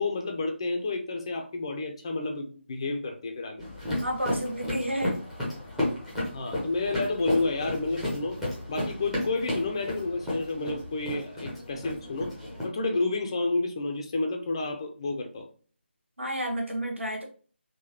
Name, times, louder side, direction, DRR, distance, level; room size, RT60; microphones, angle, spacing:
voice 1, 0.0-3.6 6.3-8.4 8.7-12.4 12.6-15.5, left 3 dB, 25° left, 0.5 m, -30 dB
sound 1, 3.6-12.7, left 1 dB, 5° right, 0.8 m, -33 dB
voice 2, 4.0-5.2 16.2-17.2, equal, 80° right, 1.4 m, -30 dB
3.7 x 2.8 x 2.8 m
figure-of-eight pair, 155°, 7 cm